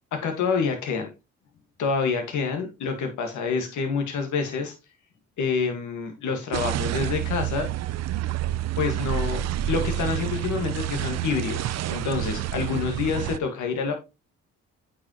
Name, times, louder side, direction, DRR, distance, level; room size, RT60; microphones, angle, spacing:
voice 1, 0.1-1.1 1.8-4.7 5.4-7.7 8.8-9.4 9.7-13.9, left 5 dB, 75° left, 4 dB, 1.8 m, -27 dB
sound 1, 6.5-13.4, right 12 dB, 60° right, 0.5 m, -28 dB
8.8 x 5.4 x 3.0 m, 0.26 s
cardioid pair, 90°, 30 cm